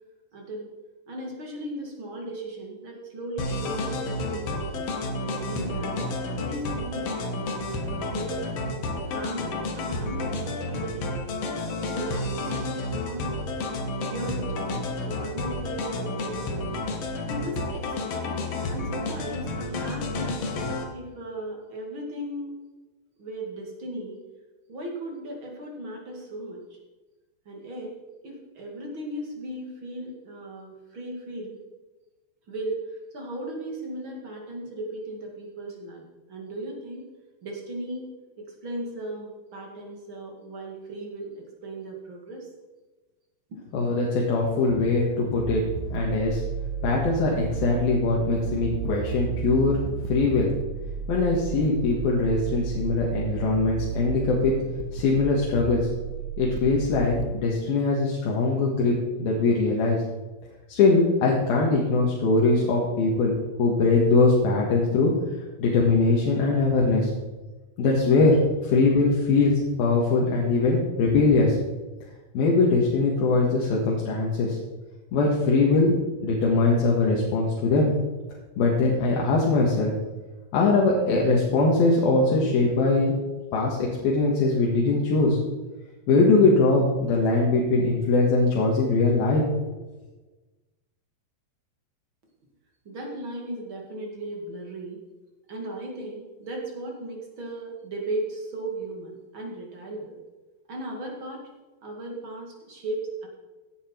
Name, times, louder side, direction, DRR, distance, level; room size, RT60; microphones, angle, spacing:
voice 1, 0.3-0.7 1.1-4.9 5.2-6.0 6.3-7.2 7.9-8.5 8.9-11.6 11.9-13.5 14.0-14.7 15.0-16.7 17.2-18.1 18.7-22.5 23.2-24.2 24.7-26.8 27.5-27.9 28.2-31.6 32.5-32.8 33.1-36.0 36.3-37.0 37.4-38.0 38.4-42.5 43.5-43.6 92.8-95.0 95.5-100.2 100.7-101.4 101.8-103.3, right 1 dB, 40° right, 0 dB, 2.6 m, -36 dB
sound 1, 3.4-20.8, left 2 dB, 55° left, 2.1 m, -31 dB
voice 2, 43.7-45.6 45.9-46.4 46.8-49.8 50.1-50.5 51.1-54.5 54.9-55.8 56.4-60.0 60.7-63.3 63.6-65.1 65.6-67.1 67.8-68.4 68.6-71.6 72.3-74.6 75.1-76.0 76.2-77.9 78.6-79.9 80.5-83.1 83.5-85.4 86.1-89.4, left 3 dB, 85° left, -3 dB, 3.6 m, -21 dB
sound 2, 45.4-57.3, right 8 dB, 85° right, 1.6 m, -32 dB
16.0 x 9.4 x 4.5 m, 1.2 s
omnidirectional pair, 4.2 m